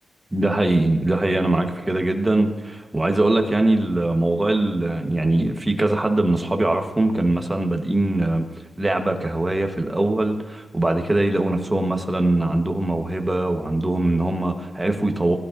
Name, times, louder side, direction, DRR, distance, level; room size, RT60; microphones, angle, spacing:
voice 1, 0.3-8.4 8.8-15.4, right 2 dB, 15° right, 4 dB, 1.2 m, -22 dB
18.5 x 11.5 x 2.6 m, 1.2 s
wide cardioid pair, 110°, 0 cm